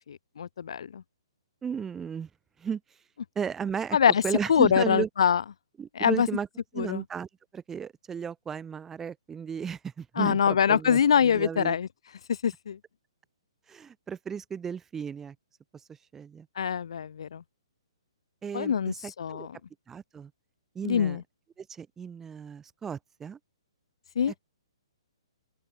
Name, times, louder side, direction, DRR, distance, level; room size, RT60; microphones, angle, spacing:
voice 1, 0.1-1.0 3.9-4.2 4.5-5.4 6.0-6.3 6.8-7.0 10.2-11.9 12.4-12.8 16.6-17.4 18.5-19.5 20.8-21.2 24.2-24.3, left 7 dB, 70° left, 0.4 m, -24 dB
voice 2, 1.6-2.3 2.6-2.8 3.4-4.0 4.2-5.1 5.8-6.5 6.7-7.3 7.5-11.8 13.7-15.4 16.1-16.5 18.4-19.5 19.9-20.3 20.7-21.2 21.6-23.4, right 7 dB, 10° right, 0.6 m, -34 dB
open air
hypercardioid pair, 140°, 3 cm